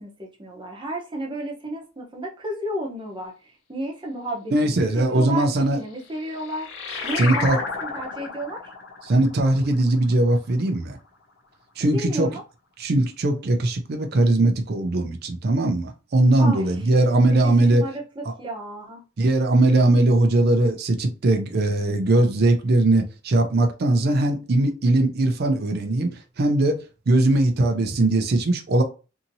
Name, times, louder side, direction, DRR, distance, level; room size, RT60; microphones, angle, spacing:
voice 1, 0.0-5.5 5.7-6.7 7.0-8.7 11.8-12.4 16.4-16.7 17.3-19.0, right 1 dB, 25° right, 0.8 m, -32 dB
voice 2, 4.5-5.8 7.2-7.6 9.0-11.0 11.8-12.3 12.8-17.8 19.2-26.8 27.1-28.8, right 2 dB, 50° right, 0.5 m, -20 dB
sound 1, 5.8-10.9, left 4 dB, 60° left, 0.7 m, -33 dB
2.7 x 2.7 x 2.6 m
head